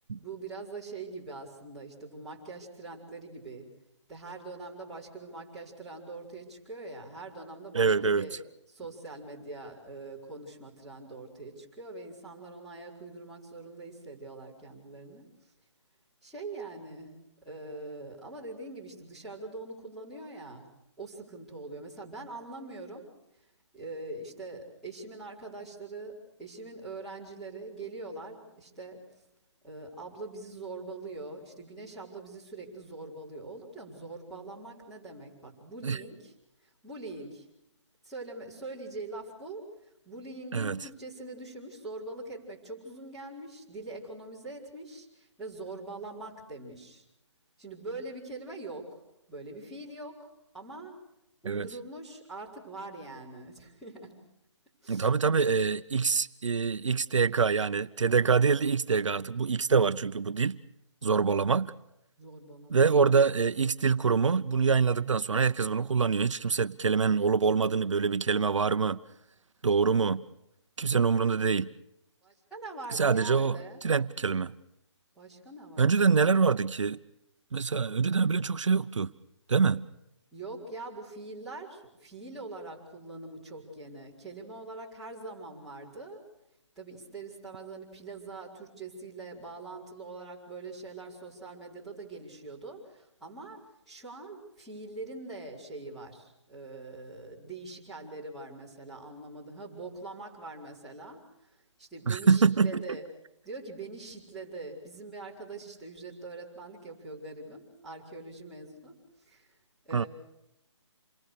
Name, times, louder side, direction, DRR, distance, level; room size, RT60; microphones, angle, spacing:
voice 1, 0.1-3.7 4.1-8.3 8.7-15.2 16.2-17.1 17.4-20.6 21.0-23.0 23.7-29.0 29.6-36.3 36.6-37.4 38.0-39.7 40.0-47.0 47.6-49.0 49.3-50.2 50.5-51.0 51.4-54.1 54.8-55.1 62.2-62.9 72.2-73.8 75.1-76.3 80.3-86.2 86.7-93.6 93.9-101.5 101.8-103.1 103.4-108.9 109.2-109.5 109.8-110.1, right 3 dB, ahead, 5.0 m, -43 dB
voice 2, 7.7-8.3 35.8-36.0 40.5-40.8 51.5-51.7 54.9-60.6 61.0-61.7 62.7-69.0 69.6-70.2 70.8-71.7 72.9-73.6 73.8-74.5 75.8-77.0 77.5-79.1 79.5-79.8 102.1-102.8 109.9-110.0, right 5 dB, 80° right, 0.8 m, -25 dB
28.0 x 22.0 x 6.8 m
hypercardioid pair, 165°, 16 cm